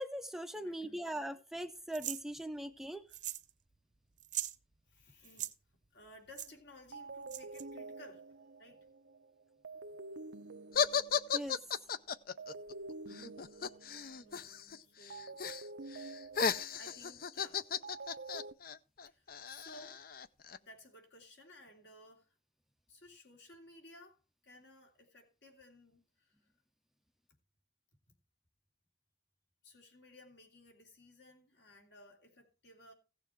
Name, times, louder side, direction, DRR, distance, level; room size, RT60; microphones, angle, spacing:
voice 1, 0.0-3.1 11.3-11.6, right 1 dB, ahead, 0.5 m, -40 dB
voice 2, 0.5-1.0 4.9-5.5 5.9-8.2 8.6-8.9 14.2-15.5 16.4-17.6 19.0-20.0 20.6-22.4 22.9-26.5 29.6-32.9, left 1 dB, 70° left, 3.2 m, -58 dB
sound 1, 1.9-2.2 3.1-3.5 3.7-3.8 4.2-4.5 5.2-5.5 6.4-6.5 7.3-7.6, right 12 dB, 45° right, 0.8 m, -40 dB
sound 2, 6.5-6.6 6.9-11.9 12.4-14.6 15.1-18.5, right 3 dB, 90° right, 0.7 m, -49 dB
sound 3, 10.7-14.8 15.0-15.6 15.9-20.6, left 7 dB, 50° left, 0.5 m, -35 dB
16.0 x 7.0 x 4.5 m
head